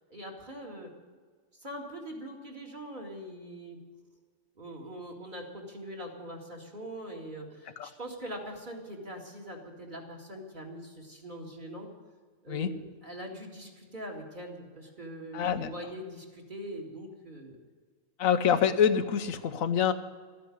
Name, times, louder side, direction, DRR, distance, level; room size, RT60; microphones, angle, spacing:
voice 1, 0.1-0.9 1.6-3.8 4.6-11.9 12.4-17.6, equal, 35° right, 0 dB, 2.3 m, -42 dB
voice 2, 15.3-15.7 18.2-19.9, left 8 dB, 90° left, 10 dB, 1.3 m, -26 dB
13.0 x 9.3 x 9.8 m, 1.5 s
omnidirectional pair, 1.4 m